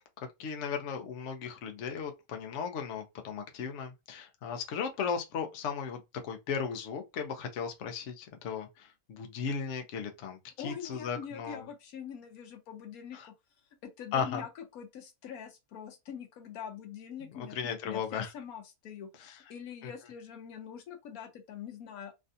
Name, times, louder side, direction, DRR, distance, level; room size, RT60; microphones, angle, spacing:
voice 1, 0.4-11.6 13.1-13.3 14.1-14.4 17.4-18.3 19.2-19.4 19.8-19.9, left 6 dB, 60° left, 0.9 m, -36 dB
voice 2, 10.6-13.3 13.8-22.1, left 8 dB, 80° left, 1.2 m, -44 dB
3.2 x 2.4 x 2.6 m
omnidirectional pair, 1.5 m